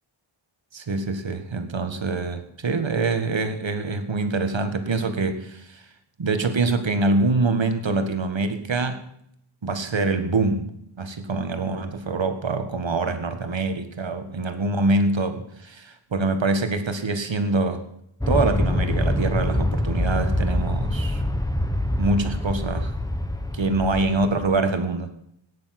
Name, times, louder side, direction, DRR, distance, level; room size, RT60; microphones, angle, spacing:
voice 1, 0.7-5.8 6.2-9.0 9.6-10.7 11.0-17.8 18.3-21.2 22.0-22.9 23.6-25.1, right 3 dB, 65° right, 8 dB, 1.8 m, -25 dB
Aircraft, 18.2-24.5, left 1 dB, 5° left, 1.4 m, -25 dB
17.5 x 10.0 x 6.0 m, 0.73 s
wide cardioid pair, 95°, 48 cm